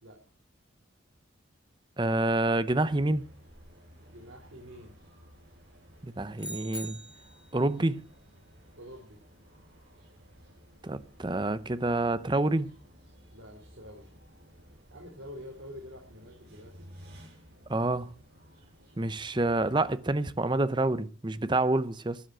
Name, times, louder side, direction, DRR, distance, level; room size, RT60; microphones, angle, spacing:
voice 1, 2.0-3.3 6.0-7.0 7.5-8.0 10.8-12.7 17.7-18.1 19.0-22.2, right 2 dB, 25° right, 0.7 m, -27 dB
sound 1, 2.7-20.0, equal, 50° right, 7.2 m, -55 dB
voice 2, 4.0-4.9 8.7-9.2 13.3-14.1 14.9-16.7, equal, 80° right, 3.2 m, -47 dB
sound 2, 6.4-7.5, right 1 dB, 5° right, 1.8 m, -41 dB
12.5 x 9.3 x 7.6 m
head